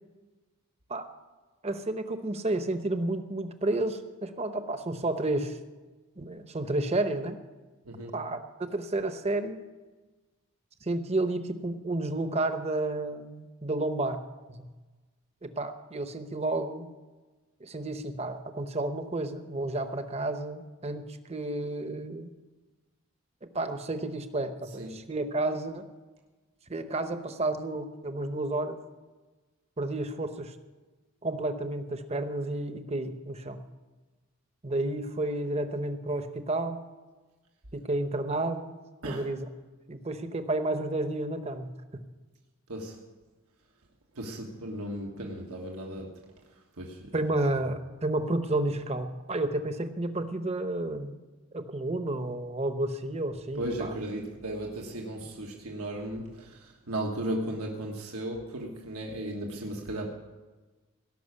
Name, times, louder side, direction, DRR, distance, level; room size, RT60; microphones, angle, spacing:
voice 1, 1.6-5.6 6.2-7.4 8.1-8.4 8.7-9.6 10.8-14.2 14.5-14.7 15.4-16.9 17.6-21.0 21.3-22.3 23.5-25.9 26.7-28.8 29.8-30.5 31.2-33.6 34.6-36.8 37.7-38.8 39.1-39.5 39.9-41.8 47.1-51.2 51.5-53.9, right 2 dB, 30° right, 9 dB, 0.8 m, -31 dB
voice 2, 7.8-8.2 24.8-25.0 39.0-39.3 42.7-43.0 44.1-46.2 46.5-47.2 53.5-60.1, right 1 dB, 90° right, 0 dB, 1.5 m, -36 dB
17.5 x 6.0 x 8.2 m, 1.2 s
head